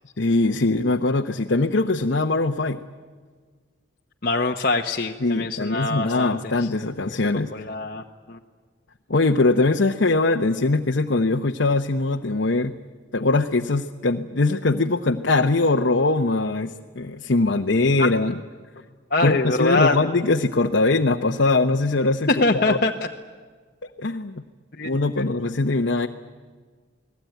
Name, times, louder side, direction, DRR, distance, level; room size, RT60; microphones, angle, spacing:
voice 1, 0.2-2.8 5.2-7.5 9.1-12.7 13.1-18.4 19.2-22.8 24.0-24.4 24.8-26.1, left 3 dB, 70° left, 3 dB, 0.9 m, -21 dB
voice 2, 4.2-6.7 7.5-8.4 18.0-18.1 19.1-20.1 22.3-23.1 24.8-24.9, left 2 dB, 50° left, 0 dB, 1.0 m, -24 dB
29.5 x 19.5 x 9.2 m, 1.5 s
head